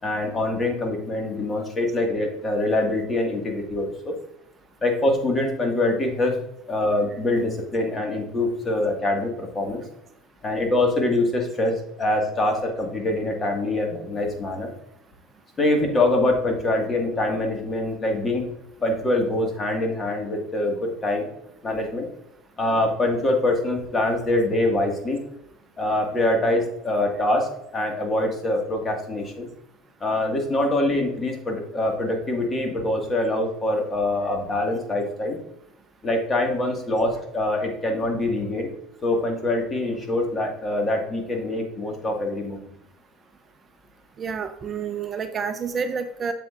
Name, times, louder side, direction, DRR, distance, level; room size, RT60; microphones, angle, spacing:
voice 1, 0.0-4.1 4.8-6.4 6.7-9.8 10.4-14.7 15.6-18.5 18.8-21.3 21.6-22.1 22.6-25.2 25.8-29.5 30.0-35.4 36.0-38.7 39.0-42.6, left 1 dB, 25° left, 2 dB, 1.8 m, -24 dB
voice 2, 44.2-46.3, right 6 dB, 30° right, 8 dB, 0.5 m, -29 dB
7.7 x 7.5 x 2.5 m, 0.84 s
supercardioid pair, 115°, 0 cm